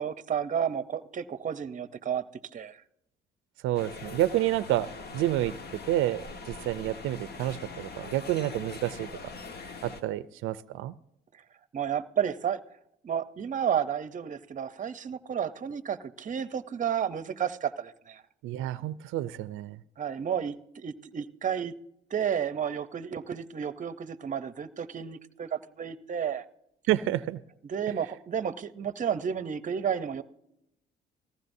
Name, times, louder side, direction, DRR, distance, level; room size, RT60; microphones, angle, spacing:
voice 1, 0.0-2.2 2.5-2.8 11.7-12.6 13.0-18.2 20.0-21.7 22.1-26.5 27.7-30.2, right 8 dB, 40° right, 14 dB, 0.7 m, -31 dB
voice 2, 3.6-4.9 5.1-5.5 5.9-9.1 9.8-11.0 18.4-19.8 26.9-27.4 27.9-28.0, right 14 dB, 85° right, 16 dB, 0.4 m, -29 dB
sound 1, 3.7-10.0, left 4 dB, 55° left, 1.3 m, -42 dB
18.5 x 15.0 x 2.6 m, 0.82 s
cardioid pair, 90°, 20 cm